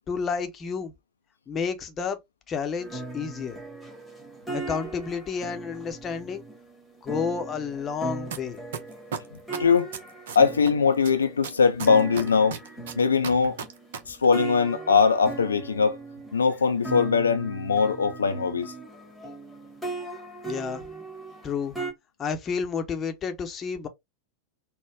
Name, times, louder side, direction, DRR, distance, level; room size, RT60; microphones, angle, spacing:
voice 1, 0.1-0.9 1.5-2.2 2.5-3.6 4.5-6.4 7.0-8.6 20.4-20.8 21.4-21.7 22.2-23.9, left 6 dB, 25° left, 0.7 m, -30 dB
sound 1, 2.8-21.9, right 3 dB, 5° left, 1.3 m, -38 dB
sound 2, 8.3-8.4 8.7-10.7 11.0-14.0 14.2-14.3, right 7 dB, 60° right, 0.7 m, -34 dB
voice 2, 9.6-9.9 10.3-12.6 13.0-13.6 14.1-16.0 16.3-18.7, left 5 dB, 75° left, 0.4 m, -21 dB
4.2 x 2.2 x 3.4 m
figure-of-eight pair, 90°, 0 cm